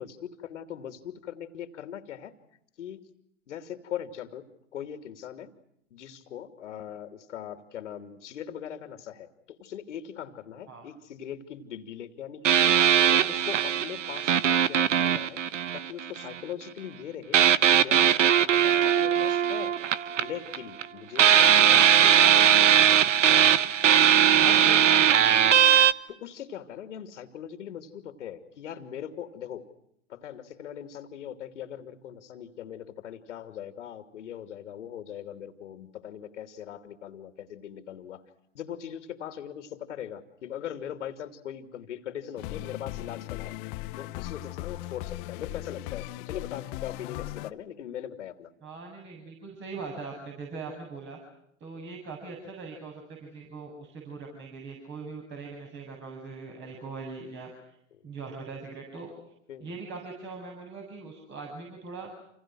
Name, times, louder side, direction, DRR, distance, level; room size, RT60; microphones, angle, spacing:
voice 1, 0.0-2.3 2.8-3.1 3.5-4.5 4.7-5.5 5.9-12.6 13.1-15.4 15.7-17.4 17.7-19.7 20.2-22.2 24.4-25.3 26.1-29.7 30.1-38.2 38.5-43.6 44.0-48.5 57.9-58.0 59.5-59.8, left 9 dB, 80° left, 7 dB, 2.9 m, -40 dB
sound 1, 12.4-16.3 17.3-20.9 21.2-25.9, right 9 dB, 85° right, 1.3 m, -20 dB
voice 2, 24.3-25.7 48.6-51.2 51.6-57.7 58.0-59.1 59.6-62.1, right 4 dB, 30° right, 0 dB, 7.9 m, -41 dB
sound 2, 42.4-47.5, left 19 dB, 45° left, 1.0 m, -38 dB
29.0 x 28.5 x 6.3 m, 0.76 s
hypercardioid pair, 120°, 36 cm